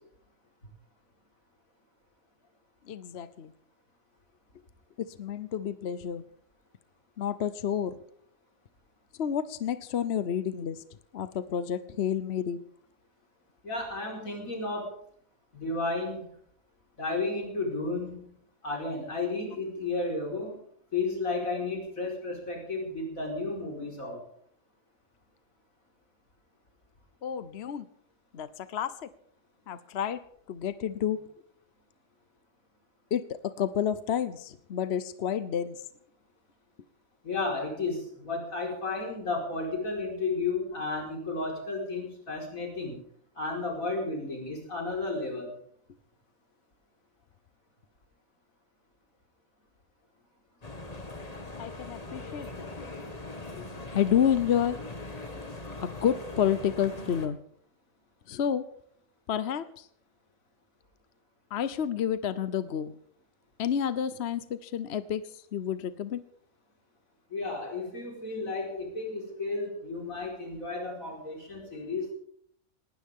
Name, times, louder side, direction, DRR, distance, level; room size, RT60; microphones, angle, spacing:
voice 1, 2.9-3.5 5.2-6.2 7.2-8.0 9.2-10.8 11.1-12.6 27.2-27.9 28.3-28.9 29.7-30.2 30.5-31.2 33.1-35.8 51.6-52.7 53.5-53.7 53.9-54.8 55.8-57.4 58.3-58.6 59.3-59.9 61.5-62.9 63.6-65.2 65.5-66.2, left 9 dB, 55° left, 13 dB, 1.0 m, -30 dB
voice 2, 13.6-15.0 15.5-16.3 17.0-18.3 18.6-20.6 20.9-24.2 37.2-43.0 43.4-45.5 67.3-72.1, left 3 dB, 80° left, -1 dB, 5.2 m, -33 dB
sound 1, 50.6-57.3, left 2 dB, 30° left, 2.0 m, -41 dB
19.5 x 19.0 x 3.7 m, 0.63 s
omnidirectional pair, 1.4 m